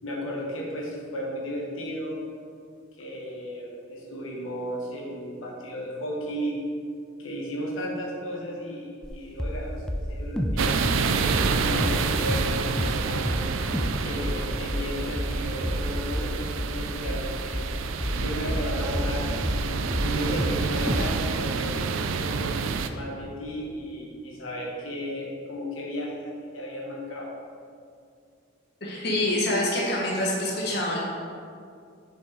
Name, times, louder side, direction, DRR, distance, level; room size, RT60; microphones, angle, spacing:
voice 1, 0.0-2.2 3.0-6.6 7.2-10.9 11.5-13.4 14.0-17.7 18.2-19.2 19.5-21.8 22.1-22.5 22.9-27.3 29.8-29.9, equal, 85° left, -2 dB, 1.2 m, -34 dB
sound 1, 9.0-9.1 9.4-9.6 9.9-12.0 12.3-12.5 12.8-13.0 13.2-13.5 13.7-14.0 14.2-19.7 19.9-20.6 20.9-21.1, equal, 5° left, 0.3 m, -28 dB
sound 2, 10.6-22.9, right 5 dB, 80° right, 0.4 m, -29 dB
voice 2, 28.8-31.0, left 1 dB, 50° left, -3 dB, 1.1 m, -26 dB
6.5 x 5.4 x 3.9 m, 2.3 s
head